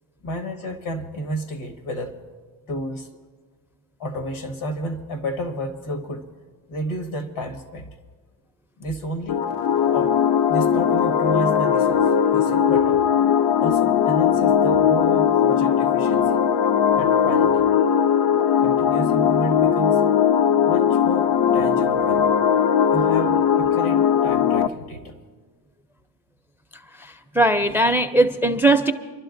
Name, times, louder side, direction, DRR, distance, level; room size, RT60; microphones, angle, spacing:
voice 1, 0.2-2.1 2.7-3.1 4.0-6.3 6.7-7.9 8.8-9.4 9.9-10.2 10.5-13.1 13.6-16.4 16.9-17.7 18.6-20.1 20.6-22.3 22.9-25.1, equal, 75° left, 6 dB, 1.7 m, -31 dB
sound 1, 9.3-24.7, left 8 dB, 60° left, 0.5 m, -19 dB
voice 2, 27.0-28.9, right 2 dB, 5° right, 9 dB, 0.4 m, -19 dB
29.5 x 12.0 x 2.6 m, 1.5 s
cardioid pair, 110°, 48 cm